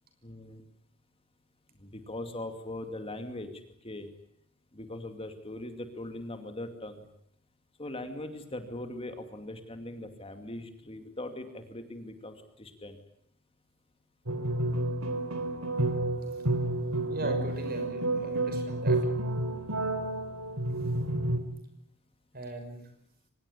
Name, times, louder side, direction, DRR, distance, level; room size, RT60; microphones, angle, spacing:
voice 1, 0.2-0.6 1.8-3.5 3.8-4.1 4.7-7.0 7.8-13.0, left 1 dB, 25° left, 7 dB, 2.5 m, -40 dB
sound 1, 14.3-21.4, right 2 dB, 75° right, 3.0 m, -30 dB
voice 2, 17.1-19.0 22.3-22.8, right 2 dB, 45° right, 8 dB, 6.0 m, -38 dB
24.5 x 20.5 x 9.9 m, 0.70 s
head